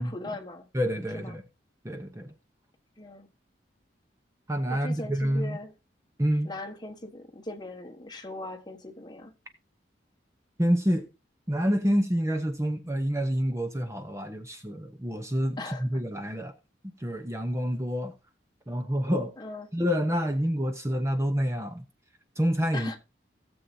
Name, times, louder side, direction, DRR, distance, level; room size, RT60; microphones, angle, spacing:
voice 1, 0.0-0.7 1.1-1.4 3.0-3.3 4.7-5.7 6.4-9.3 15.6-15.8 19.4-19.7 22.7-23.0, left 2 dB, 25° left, 1.3 m, -39 dB
voice 2, 0.7-1.4 1.8-2.3 4.5-5.6 6.2-6.6 10.6-11.1 11.5-16.5 17.0-18.1 18.7-19.3 19.7-21.8 22.4-22.9, equal, 15° right, 0.9 m, -28 dB
17.0 x 7.2 x 2.7 m
head